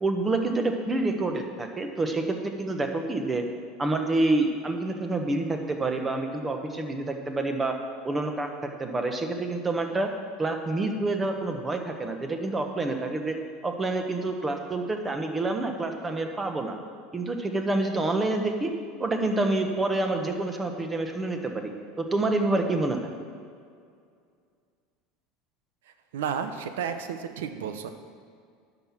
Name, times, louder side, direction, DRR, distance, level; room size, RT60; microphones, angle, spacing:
voice 1, 0.0-3.5 3.8-7.8 8.0-10.1 10.4-13.4 13.6-16.8 17.1-18.7 19.0-21.7 22.0-23.1, right 2 dB, 20° right, 5 dB, 1.2 m, -27 dB
voice 2, 26.1-27.9, right 7 dB, 90° right, 9 dB, 0.8 m, -32 dB
10.5 x 6.0 x 7.4 m, 2.2 s
supercardioid pair, 115°, 0 cm